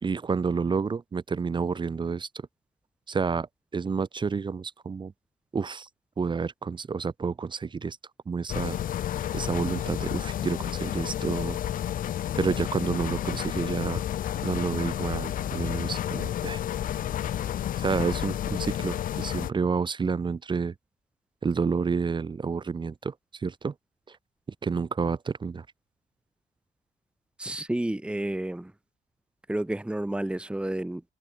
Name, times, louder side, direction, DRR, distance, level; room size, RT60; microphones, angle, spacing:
voice 1, 0.0-2.3 3.1-3.5 3.7-5.1 5.5-5.9 6.2-8.0 8.3-8.8 9.3-11.6 12.4-14.0 14.4-16.6 17.8-20.7 21.4-23.7 24.1-24.2 24.6-25.7, right 5 dB, 30° right, 2.1 m, -29 dB
sound 1, 8.5-19.5, left 11 dB, 55° left, 1.5 m, -31 dB
voice 2, 27.4-28.7 29.5-31.0, right 1 dB, 5° right, 1.9 m, -30 dB
cardioid pair, 110°, 17 cm